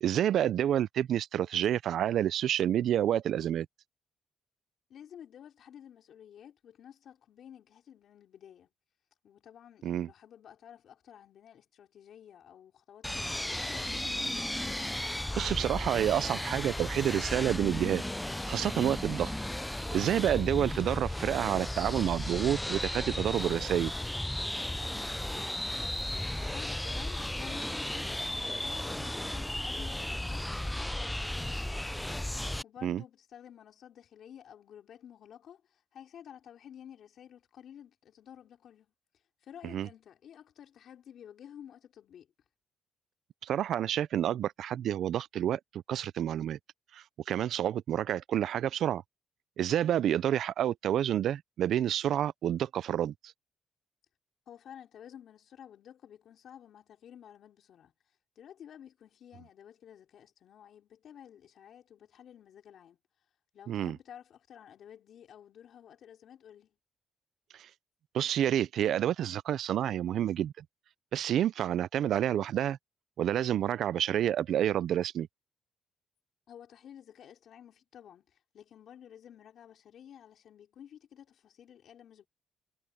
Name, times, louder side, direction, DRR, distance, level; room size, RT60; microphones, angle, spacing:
voice 1, 0.0-3.7 9.8-10.1 14.9-18.0 18.5-19.3 19.9-23.9 32.8-33.0 39.6-39.9 43.4-46.6 46.9-49.0 49.6-53.1 63.7-64.0 68.1-70.6 71.1-72.8 73.2-75.3, right 10 dB, 70° right, 0.5 m, -29 dB
voice 2, 4.9-8.7 9.2-14.2 25.8-31.9 32.3-38.9 39.4-42.3 54.5-57.9 58.4-63.0 63.5-66.8 76.5-82.3, left 9 dB, 65° left, 4.5 m, -52 dB
sound 1, 13.0-32.6, left 1 dB, 5° left, 0.5 m, -35 dB
cardioid pair, 90°, 0 cm